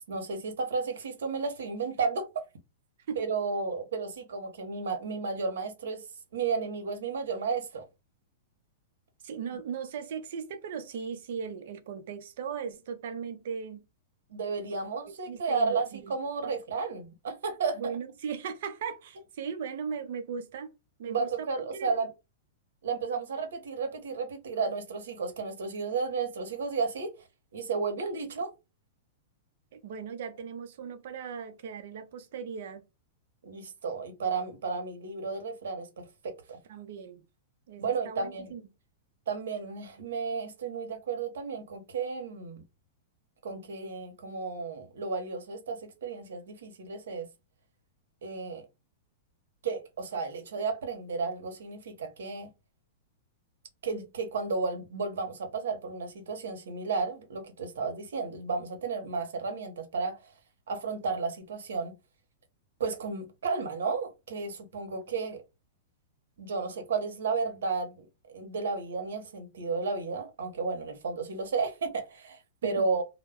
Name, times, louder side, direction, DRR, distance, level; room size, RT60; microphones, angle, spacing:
voice 1, 0.1-2.3 3.2-6.0 6.3-7.8 14.3-17.9 21.1-22.1 22.8-27.1 27.5-28.5 33.4-36.6 37.8-38.5 39.3-42.6 43.4-47.3 48.2-48.6 49.6-52.5 53.8-60.2 60.7-61.9 62.8-65.4 66.4-73.0, right 4 dB, 90° right, 0.8 m, -33 dB
voice 2, 9.2-13.8 15.3-16.1 16.4-16.6 17.8-21.9 29.7-32.8 36.7-37.2 37.7-38.6 72.6-72.9, right 6 dB, 60° right, 0.6 m, -38 dB
2.2 x 2.1 x 3.4 m
supercardioid pair, 155°, 0 cm